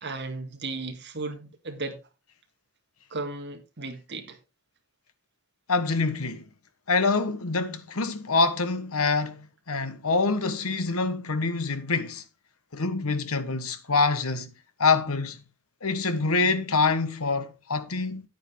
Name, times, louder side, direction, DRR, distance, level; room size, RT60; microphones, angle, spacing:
voice 1, 0.0-2.0 3.1-4.4, right 3 dB, 50° right, 1.9 m, -35 dB
voice 2, 5.7-6.4 6.9-12.2 12.7-14.5 14.8-15.4 15.8-18.2, left 4 dB, 85° left, 1.3 m, -25 dB
9.8 x 9.1 x 3.9 m
head